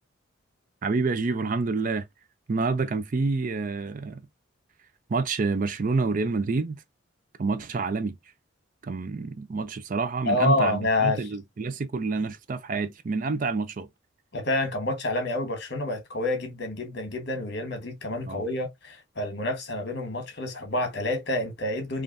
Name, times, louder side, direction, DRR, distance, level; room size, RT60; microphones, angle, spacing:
voice 1, 0.8-2.1 2.5-4.2 5.1-6.8 7.4-8.2 8.8-13.9 18.3-18.4, right 4 dB, 40° right, 0.4 m, -28 dB
voice 2, 10.2-11.3 14.3-22.0, left 2 dB, 55° left, 1.3 m, -28 dB
5.2 x 2.5 x 2.6 m
head